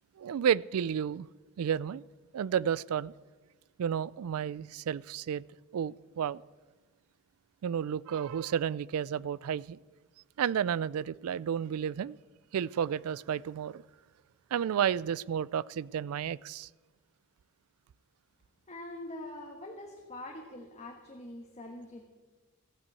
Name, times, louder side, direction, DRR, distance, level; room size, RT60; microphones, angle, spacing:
voice 1, 0.2-1.3 1.6-2.0 2.3-3.1 3.8-5.4 5.7-6.4 7.6-9.8 10.4-12.2 12.5-13.8 14.5-16.7, right 8 dB, 80° right, 0.3 m, -31 dB
voice 2, 18.7-22.1, left 1 dB, 30° left, 1.3 m, -44 dB
15.0 x 8.4 x 8.3 m
head